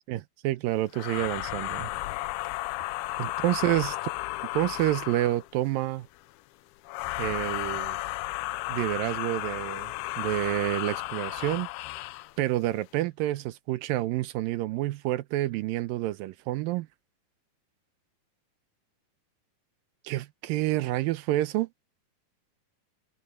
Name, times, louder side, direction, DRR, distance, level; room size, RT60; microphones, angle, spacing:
voice 1, 0.1-1.9 3.2-4.0 4.5-6.1 7.2-8.0 8.7-11.7 12.4-16.9 20.0-21.7, right 15 dB, 80° right, 2.2 m, -28 dB
sound 1, 0.9-5.5 6.9-12.3, left 18 dB, 80° left, 2.5 m, -34 dB
omnidirectional pair, 4.5 m